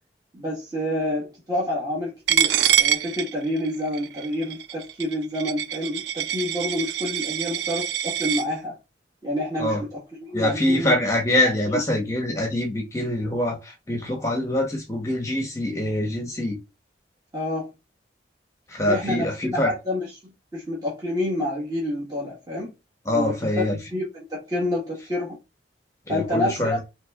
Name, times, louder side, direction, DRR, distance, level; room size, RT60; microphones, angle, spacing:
voice 1, 0.3-8.8 9.2-10.0 10.3-10.9 11.7-11.8 17.3-17.7 18.9-20.1 20.5-22.7 23.1-23.6 23.9-25.4 26.1-26.8, left 1 dB, 25° right, 1.5 m, -28 dB
Coin (dropping), 2.3-8.4, right 10 dB, 75° right, 0.4 m, -25 dB
voice 2, 10.3-16.6 18.7-19.7 23.0-23.8 26.1-26.8, left 1 dB, 15° left, 1.0 m, -24 dB
4.1 x 3.2 x 3.5 m
head